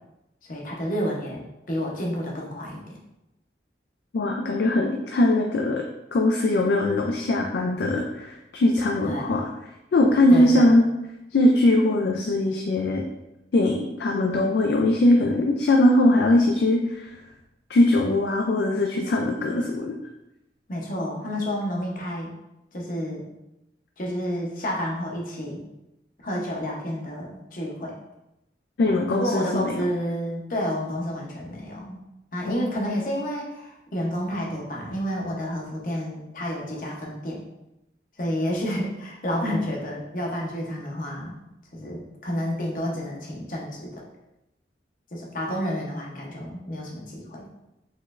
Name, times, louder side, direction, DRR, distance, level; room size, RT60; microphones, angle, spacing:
voice 1, 0.4-3.0 9.0-9.3 10.3-10.7 18.9-19.1 19.4-19.6 20.7-22.3 22.7-23.2 24.0-25.6 26.2-28.0 29.1-32.0 32.3-37.4 38.2-41.4 41.7-44.0 45.1-47.5, equal, 50° left, -2 dB, 0.8 m, -30 dB
voice 2, 4.1-5.8 6.1-9.5 9.9-10.8 11.3-13.0 13.5-17.2 17.7-19.9 28.8-29.7 32.5-32.7, left 1 dB, 70° left, 1 dB, 0.3 m, -21 dB
4.1 x 3.1 x 2.4 m, 0.91 s
head